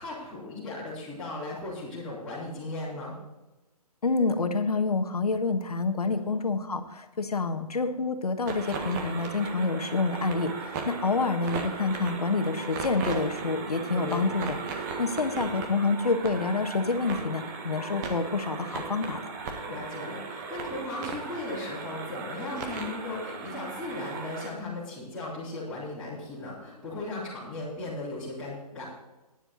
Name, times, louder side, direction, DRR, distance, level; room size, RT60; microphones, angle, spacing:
voice 1, 0.0-3.1 6.1-6.4 13.9-14.3 19.7-28.9, left 2 dB, 5° left, -15 dB, 3.8 m, -37 dB
voice 2, 4.0-19.3, left 3 dB, 70° left, 8 dB, 1.4 m, -28 dB
sound 1, 8.5-24.5, right 4 dB, 25° right, 1.5 m, -37 dB
12.0 x 10.0 x 4.1 m, 1.1 s
figure-of-eight pair, 140°, 20 cm